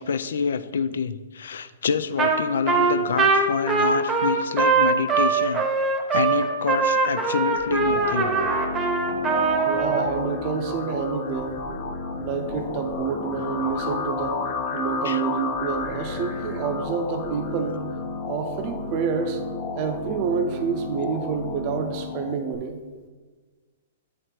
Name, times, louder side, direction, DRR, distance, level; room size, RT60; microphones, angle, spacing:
voice 1, 0.0-5.6 6.1-8.3 15.0-15.2, left 6 dB, 80° left, 14 dB, 0.3 m, -27 dB
Trumpet, 2.2-2.4 2.7-10.1, right 4 dB, 20° right, 0.8 m, -22 dB
sound 1, 7.6-22.6, left 4 dB, 35° left, 0.7 m, -32 dB
voice 2, 9.6-11.6 12.2-14.4 14.7-17.8 18.3-19.4 19.7-22.8, right 6 dB, 45° right, 6 dB, 0.6 m, -28 dB
8.4 x 3.2 x 4.4 m, 1.4 s
hypercardioid pair, 130°, 0 cm